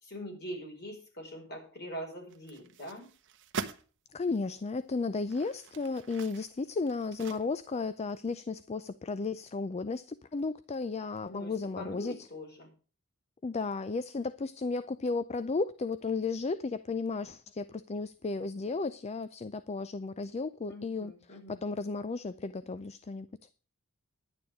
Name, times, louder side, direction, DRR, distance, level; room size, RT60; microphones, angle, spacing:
voice 1, 0.0-3.1 11.2-12.7 20.7-21.6, equal, 50° left, 5.0 m, -43 dB
sound 1, 2.3-3.9 4.5-4.6 5.2-7.8 8.2-8.3, right 4 dB, 60° right, 1.0 m, -43 dB
voice 2, 4.1-12.3 13.4-23.3, left 3 dB, 30° left, 0.4 m, -34 dB
10.5 x 9.4 x 4.9 m
head